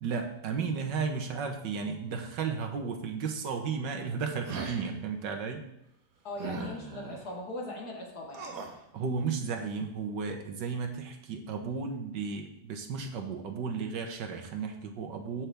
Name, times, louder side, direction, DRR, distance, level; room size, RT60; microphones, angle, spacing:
voice 1, 0.0-5.7 8.9-15.5, right 5 dB, 85° right, 5 dB, 1.7 m, -34 dB
sound 1, 4.4-4.9 6.4-7.2 8.3-8.8, right 4 dB, 60° right, 1.4 m, -38 dB
voice 2, 6.2-8.5, left 2 dB, 60° left, -1 dB, 2.4 m, -40 dB
15.0 x 6.0 x 3.4 m, 0.82 s
omnidirectional pair, 1.9 m